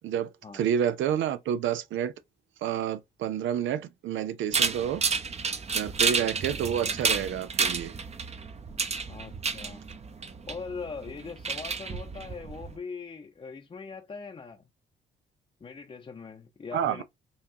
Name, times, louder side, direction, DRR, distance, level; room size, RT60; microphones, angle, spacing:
voice 1, 0.0-2.1 2.6-5.0 5.7-7.9 16.7-17.0, right 9 dB, 75° right, 0.5 m, -29 dB
sound 1, 4.5-12.8, right 5 dB, 35° right, 0.8 m, -31 dB
voice 2, 9.1-9.8 10.5-14.6 15.6-17.0, left 5 dB, 30° left, 0.7 m, -41 dB
5.5 x 2.3 x 2.8 m
cardioid pair, 90°, 20 cm